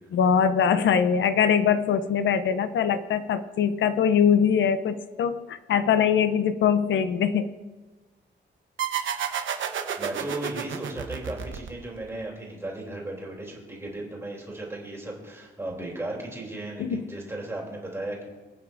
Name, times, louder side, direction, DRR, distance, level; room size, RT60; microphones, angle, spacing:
voice 1, 0.1-7.5 16.8-17.0, left 7 dB, 75° left, 11 dB, 0.6 m, -22 dB
sound 1, 8.8-12.1, right 8 dB, 80° right, 1.0 m, -31 dB
voice 2, 10.0-18.2, right 2 dB, 15° right, -2 dB, 2.9 m, -36 dB
26.0 x 8.9 x 2.6 m, 1.3 s
wide cardioid pair, 165°, 20 cm